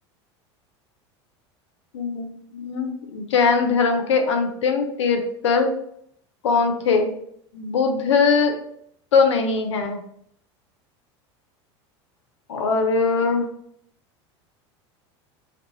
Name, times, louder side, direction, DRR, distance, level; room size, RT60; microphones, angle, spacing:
voice 1, 1.9-5.7 6.4-7.2 7.5-8.6 9.1-10.0 12.5-13.5, left 4 dB, 90° left, 5 dB, 0.4 m, -21 dB
2.3 x 2.0 x 2.8 m, 0.68 s
hypercardioid pair, 90°, 15 cm